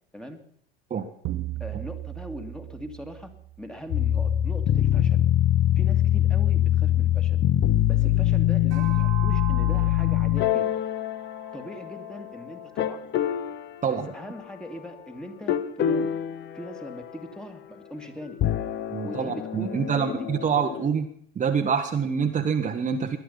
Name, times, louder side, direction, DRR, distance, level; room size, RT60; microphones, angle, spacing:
sound 1, 1.2-4.0, right 15 dB, 45° right, 1.1 m, -36 dB
voice 1, 1.6-3.3 3.6-5.3 5.8-7.4 7.9-10.8 11.5-13.1 13.9-16.2 16.5-18.4 19.0-20.5, equal, 5° left, 6 dB, 2.2 m, -40 dB
sound 2, 3.9-12.2 12.8-13.6 15.5-17.2 18.3-20.9, left 12 dB, 40° left, 1.0 m, -24 dB
sound 3, 8.7-13.3, right 13 dB, 70° right, 2.1 m, -41 dB
voice 2, 18.9-21.1 21.3-23.2, right 6 dB, 25° right, 4 dB, 1.3 m, -26 dB
20.0 x 11.5 x 5.5 m, 0.63 s
figure-of-eight pair, 75°, 29 cm